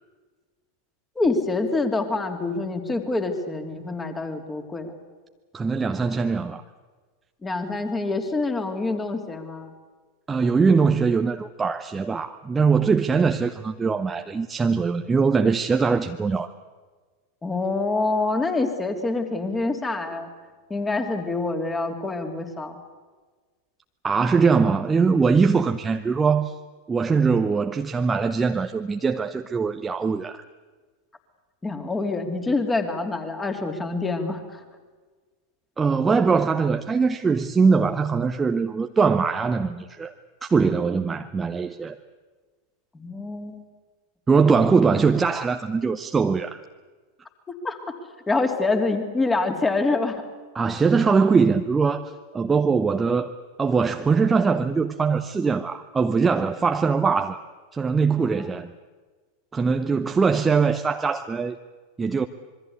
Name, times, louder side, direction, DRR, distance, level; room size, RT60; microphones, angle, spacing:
voice 1, 1.1-4.9 7.4-9.7 17.4-20.3 20.7-22.8 31.6-34.6 42.9-43.6 47.6-47.8 48.3-50.2 58.2-58.5, left 3 dB, 15° left, 6 dB, 3.2 m, -26 dB
voice 2, 5.5-6.6 10.3-16.5 24.0-26.5 26.9-30.4 35.8-40.1 40.4-42.0 44.3-46.6 50.5-53.3 53.6-57.4 57.7-58.7 59.5-61.6 62.0-62.3, right 5 dB, 15° right, 7 dB, 0.9 m, -22 dB
26.0 x 23.0 x 8.3 m, 1.4 s
figure-of-eight pair, 90°, 0 cm